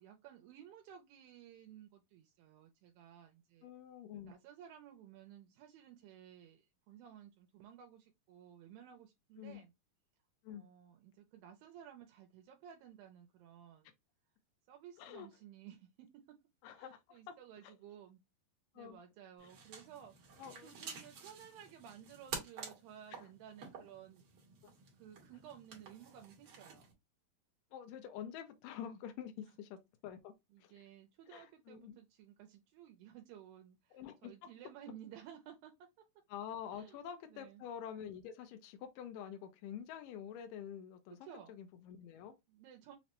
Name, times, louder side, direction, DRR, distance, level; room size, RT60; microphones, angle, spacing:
voice 1, 0.0-3.7 4.3-9.7 10.5-13.9 14.7-16.4 16.8-18.2 18.8-24.3 25.0-27.0 30.5-35.9 36.7-37.0 37.3-37.6 41.2-41.5 42.5-43.0, right 10 dB, 80° right, 2.2 m, -56 dB
voice 2, 3.6-4.4 9.4-9.6 10.4-10.7 15.0-15.3 16.6-17.4 17.6-17.7 18.8-19.0 19.4-19.5 20.4-21.0 23.1-23.3 24.6-24.7 27.7-30.3 30.6-30.8 31.3-32.0 33.9-34.5 36.3-42.4, left 9 dB, 80° left, 2.1 m, -48 dB
sound 1, 19.4-26.9, right 5 dB, 65° right, 1.4 m, -50 dB
5.8 x 2.1 x 2.8 m
omnidirectional pair, 4.3 m